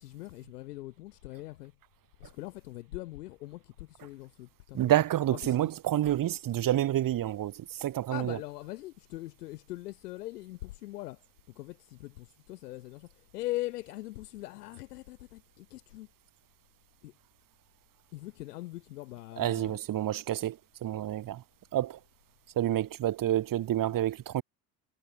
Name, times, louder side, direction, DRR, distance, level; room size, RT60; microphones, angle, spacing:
voice 1, 0.0-1.7 2.2-4.9 5.3-5.7 8.1-11.2 11.5-16.1 17.0-17.1 18.1-19.8, left 17 dB, 80° left, 3.3 m, -41 dB
voice 2, 4.7-8.4 19.4-20.6 20.8-21.4 21.7-22.0 22.6-24.4, right 12 dB, 45° right, 2.2 m, -28 dB
hypercardioid pair, 80°, 46 cm